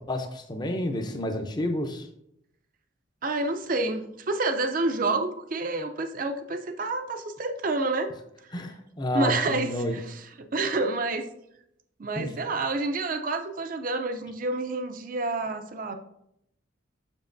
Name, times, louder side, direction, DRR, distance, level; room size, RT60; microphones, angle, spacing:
voice 1, 0.1-2.1 8.5-10.0 12.1-12.3, left 1 dB, 20° left, 6 dB, 0.6 m, -30 dB
voice 2, 3.2-8.1 9.1-11.3 12.0-15.9, right 2 dB, 45° right, 8 dB, 0.5 m, -28 dB
7.2 x 6.1 x 2.6 m, 0.78 s
head